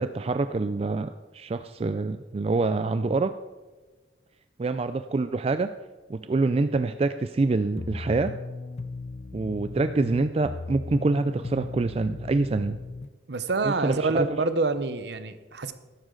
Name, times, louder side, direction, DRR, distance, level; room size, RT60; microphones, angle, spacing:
voice 1, 0.0-3.3 4.6-5.7 6.1-8.3 9.3-12.8 13.6-14.3, right 3 dB, 30° right, 10 dB, 0.3 m, -26 dB
sound 1, 7.8-13.1, left 3 dB, 35° left, 0.4 m, -37 dB
voice 2, 13.3-15.7, right 3 dB, 60° right, 11 dB, 0.8 m, -27 dB
13.0 x 11.5 x 3.9 m, 1.3 s
head